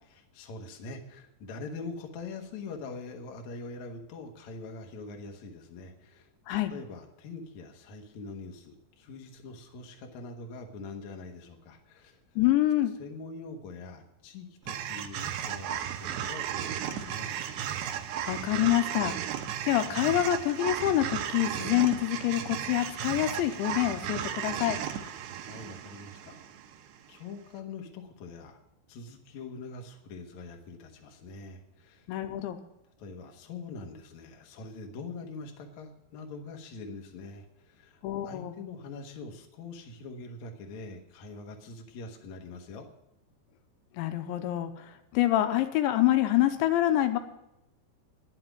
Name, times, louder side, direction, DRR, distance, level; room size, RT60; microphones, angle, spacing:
voice 1, 0.0-6.3 6.7-12.2 13.0-17.3 25.5-26.4 27.1-28.6 28.9-32.1 33.0-42.9, left 3 dB, 65° left, 3 dB, 1.8 m, -43 dB
voice 2, 12.4-12.9 18.3-19.1 19.6-24.8 32.1-32.6 38.0-38.5 44.0-47.2, left 13 dB, 85° left, 8 dB, 3.0 m, -26 dB
sound 1, 14.7-27.0, right 9 dB, 75° right, 2.6 m, -35 dB
10.5 x 7.7 x 9.1 m, 0.87 s
omnidirectional pair, 5.4 m